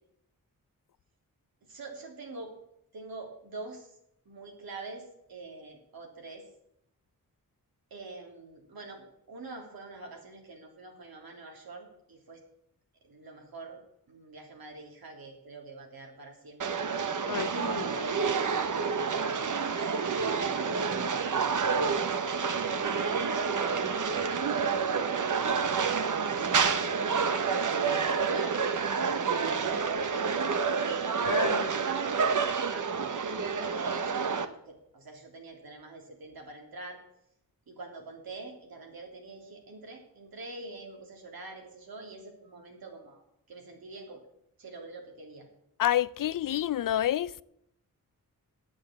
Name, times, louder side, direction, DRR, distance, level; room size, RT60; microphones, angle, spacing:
voice 1, 1.7-2.5 2.9-3.9 4.2-6.4 7.9-12.4 13.1-13.8 14.1-16.9 17.7-18.0 18.8-19.8 20.3-22.2 23.0-24.2 24.5-26.5 27.0-30.5 31.2-32.0 32.5-37.0 37.7-43.2 43.5-44.2 44.6-45.5, right 3 dB, 85° right, 3.4 m, -45 dB
sound 1, 16.6-34.4, right 5 dB, 60° right, 1.0 m, -29 dB
voice 2, 17.3-18.1 31.2-31.7 45.8-47.4, left 11 dB, 65° left, 0.5 m, -29 dB
10.5 x 8.4 x 7.5 m
wide cardioid pair, 130°, 35 cm